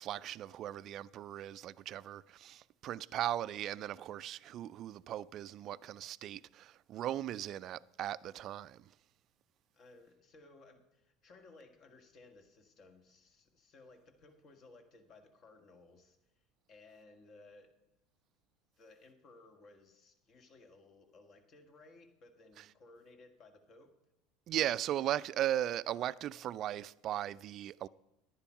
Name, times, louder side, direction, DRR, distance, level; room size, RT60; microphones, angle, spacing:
voice 1, 0.0-8.8 24.5-27.9, right 12 dB, 50° right, 0.3 m, -37 dB
voice 2, 9.7-17.7 18.8-23.9, left 3 dB, 45° left, 1.8 m, -59 dB
10.5 x 9.9 x 5.8 m
hypercardioid pair, 75°, 0 cm